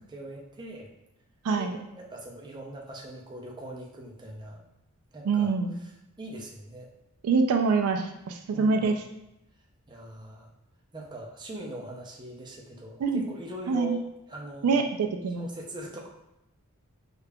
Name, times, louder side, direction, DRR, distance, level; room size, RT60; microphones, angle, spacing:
voice 1, 0.1-0.9 1.6-4.7 5.1-6.9 8.5-9.0 9.9-10.5 10.9-14.9 15.4-16.1, right 1 dB, 20° right, -1 dB, 0.5 m, -42 dB
voice 2, 1.4-1.8 5.3-5.8 7.2-9.0 13.0-13.2 13.7-14.0 14.6-15.5, right 4 dB, 80° right, 5 dB, 0.3 m, -25 dB
4.9 x 2.3 x 2.2 m, 0.89 s
head